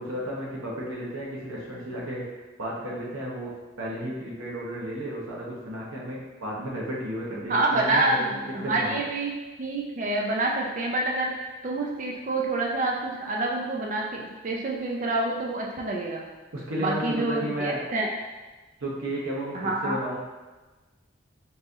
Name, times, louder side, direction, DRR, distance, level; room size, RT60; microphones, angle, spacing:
voice 1, 0.0-3.5 3.8-9.0 16.5-17.8 18.8-20.2, right 1 dB, 85° right, -4 dB, 0.9 m, -33 dB
voice 2, 7.5-9.3 9.6-16.2 16.8-18.1 19.5-20.0, right 2 dB, 40° right, -1 dB, 0.3 m, -27 dB
4.0 x 2.7 x 2.3 m, 1.2 s
head